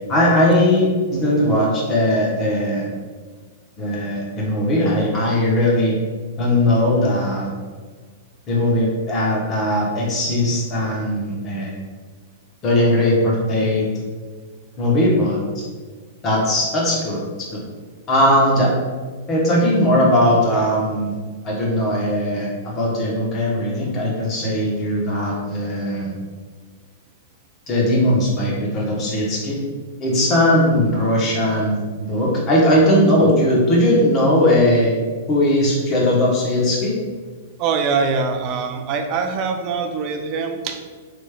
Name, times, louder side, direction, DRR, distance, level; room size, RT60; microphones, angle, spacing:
voice 1, 0.1-2.9 3.8-5.9 6.4-7.5 8.5-11.7 12.6-13.9 14.8-15.6 16.2-17.2 17.5-17.6 18.1-18.7 19.3-21.1 21.4-26.1 27.7-29.6 30.0-31.8 32.0-34.9 35.3-36.9, left 1 dB, 30° left, -3 dB, 0.9 m, -19 dB
voice 2, 37.6-40.8, right 5 dB, 40° right, 5 dB, 0.3 m, -23 dB
3.3 x 3.0 x 2.2 m, 1.5 s
hypercardioid pair, 140°, 0 cm